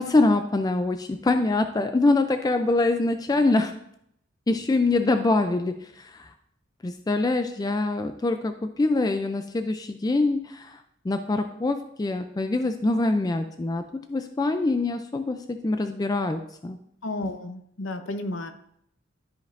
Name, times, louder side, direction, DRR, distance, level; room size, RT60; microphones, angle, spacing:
voice 1, 0.0-3.7 4.5-6.3 6.8-16.8, left 2 dB, 20° left, 7 dB, 0.3 m, -24 dB
voice 2, 17.0-18.5, left 2 dB, 65° left, 8 dB, 0.7 m, -32 dB
13.0 x 5.2 x 2.5 m, 0.73 s
head